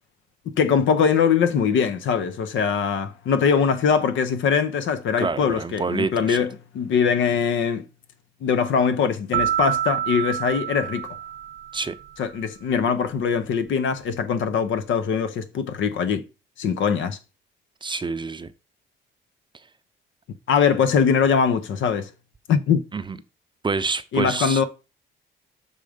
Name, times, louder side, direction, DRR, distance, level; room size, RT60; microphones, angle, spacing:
voice 1, 0.5-7.8 8.4-11.1 12.2-16.2 16.6-17.2 20.5-22.1 22.5-22.8 24.1-24.6, left 6 dB, 75° left, 0.8 m, -22 dB
voice 2, 5.2-6.4 11.7-12.0 17.8-18.5 22.9-23.2 23.6-24.6, right 4 dB, 25° right, 0.6 m, -27 dB
sound 1, 9.3-12.1, right 11 dB, 70° right, 0.5 m, -27 dB
6.6 x 3.7 x 5.0 m
cardioid pair, 90°, 20 cm